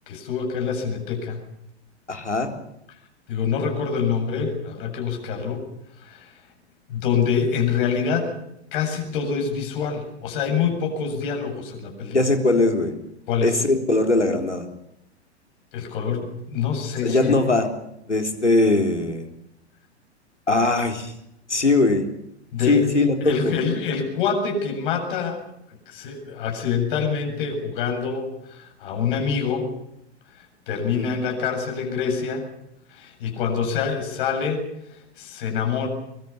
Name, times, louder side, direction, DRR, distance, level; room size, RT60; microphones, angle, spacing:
voice 1, 0.1-1.4 3.3-5.6 6.0-6.3 6.9-8.3 8.7-12.2 13.3-13.5 15.7-17.4 22.5-22.9 23.2-25.4 25.9-29.7 30.4-32.4 32.9-34.6 34.9-35.9, left 6 dB, 50° left, 3 dB, 7.7 m, -26 dB
voice 2, 2.1-2.5 12.1-13.0 13.4-14.7 17.0-17.7 18.1-19.3 20.5-21.1 21.5-22.1 22.6-23.5 30.9-31.1, left 2 dB, 85° left, 5 dB, 3.9 m, -20 dB
24.0 x 23.5 x 7.2 m, 0.80 s
figure-of-eight pair, 100°, 34 cm